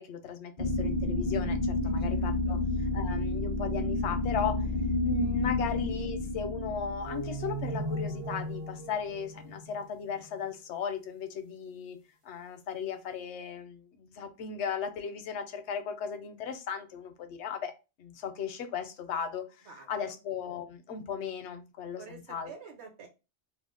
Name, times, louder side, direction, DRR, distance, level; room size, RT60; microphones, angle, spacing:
voice 1, 0.0-4.7 5.0-12.0 12.2-17.7 18.0-22.5, left 7 dB, 75° left, 0.8 m, -36 dB
sound 1, 0.6-8.5, left 2 dB, 40° left, 0.4 m, -30 dB
voice 2, 2.1-2.7 5.6-5.7 19.6-20.2 21.9-23.1, right 5 dB, 70° right, 1.1 m, -49 dB
sound 2, 7.0-10.5, right 1 dB, 45° right, 0.4 m, -37 dB
2.5 x 2.0 x 3.6 m
omnidirectional pair, 1.2 m